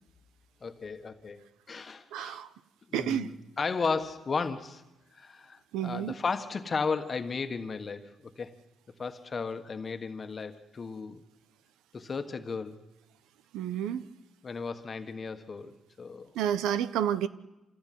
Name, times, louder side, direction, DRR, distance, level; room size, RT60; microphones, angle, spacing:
voice 1, 0.6-2.4 2.9-4.8 5.1-8.6 9.0-11.2 11.9-12.8 14.4-16.3, left 4 dB, 35° left, 8 dB, 1.5 m, -35 dB
voice 2, 2.1-2.5 2.9-3.3 5.7-6.1 13.5-14.1 16.3-17.3, right 10 dB, 90° right, 15 dB, 1.0 m, -30 dB
26.5 x 16.5 x 9.4 m, 1.0 s
cardioid pair, 100°, 0 cm